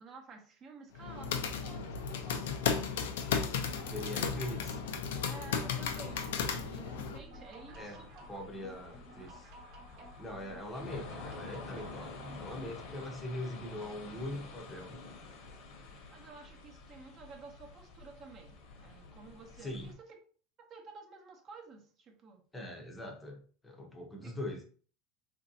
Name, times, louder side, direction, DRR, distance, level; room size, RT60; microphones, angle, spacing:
voice 1, 0.0-2.8 5.2-8.3 15.9-20.1 20.7-22.4 24.2-24.4, right 4 dB, 35° right, 2 dB, 0.7 m, -52 dB
sound 1, 0.9-7.2, left 6 dB, 90° left, 0.4 m, -34 dB
sound 2, 3.6-12.5, right 2 dB, 65° right, 0.9 m, -54 dB
sound 3, 3.8-19.9, left 4 dB, 60° left, 0.9 m, -50 dB
voice 2, 3.8-4.8 7.7-8.0 8.3-9.5 10.2-15.0 19.6-19.9 22.5-24.6, left 1 dB, 10° left, 1 dB, 0.7 m, -42 dB
3.1 x 2.6 x 2.7 m, 0.43 s
supercardioid pair, 130°, 0 cm